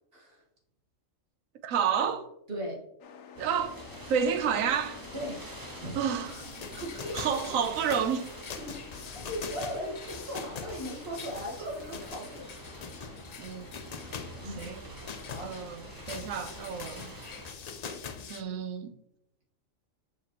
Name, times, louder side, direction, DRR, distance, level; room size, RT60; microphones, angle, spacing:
voice 1, 0.1-0.4 2.5-2.8 5.1-5.5 5.8-5.9 6.8-7.4 8.7-8.8 9.1-12.5 12.9-13.1 14.4-14.7 15.3-15.6, equal, 50° right, 1.8 m, -38 dB
voice 2, 1.6-2.3 3.4-3.8 4.1-5.0 6.0-6.5 7.1-8.3 13.4-13.7 14.6-14.8 15.4-17.2 18.3-18.9, right 7 dB, 90° right, 1.1 m, -30 dB
sound 1, 3.0-16.2, left 6 dB, 90° left, 1.1 m, -52 dB
sound 2, 3.3-17.5, right 1 dB, 15° right, 1.2 m, -46 dB
sound 3, 6.3-18.4, left 6 dB, 65° left, 0.4 m, -43 dB
7.2 x 5.4 x 2.9 m
omnidirectional pair, 1.3 m